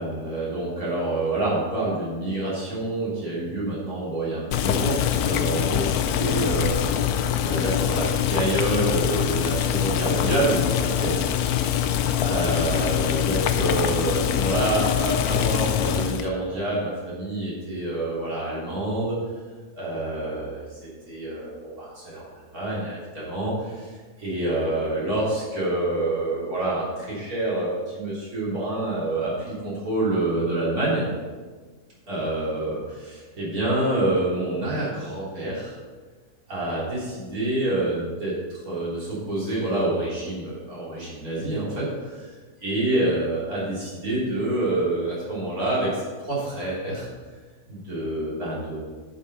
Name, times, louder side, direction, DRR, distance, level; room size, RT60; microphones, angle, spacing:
voice 1, 0.0-7.0 7.4-11.1 11.5-11.6 12.2-19.2 19.7-31.1 32.1-35.7 36.5-42.3 42.6-47.1 47.7-48.8, right 2 dB, 70° right, -7 dB, 3.9 m, -27 dB
Boiling, 4.5-16.3, left 10 dB, 80° left, 1.1 m, -24 dB
11.0 x 7.2 x 4.2 m, 1.4 s
omnidirectional pair, 1.6 m